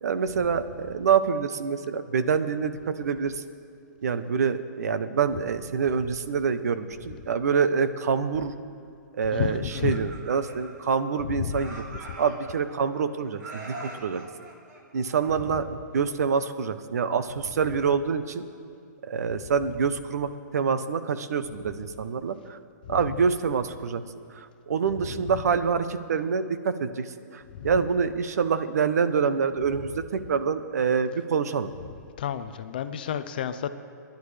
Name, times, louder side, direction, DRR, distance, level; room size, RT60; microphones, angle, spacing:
voice 1, 0.0-3.4 4.0-8.5 9.1-14.2 14.9-15.6 15.9-18.4 19.0-22.6 22.9-24.0 24.3-31.7, right 6 dB, 55° right, 11 dB, 0.8 m, -26 dB
voice 2, 9.3-10.0 11.2-11.7 12.1-12.2 22.8-23.1 27.5-27.7 32.2-33.7, left 9 dB, 30° left, 11 dB, 0.5 m, -31 dB
Laughter, 9.5-11.2 11.5-13.0 13.4-15.6, right 2 dB, 70° right, 3.7 m, -43 dB
29.0 x 10.5 x 3.3 m, 2.4 s
hypercardioid pair, 175°, 10 cm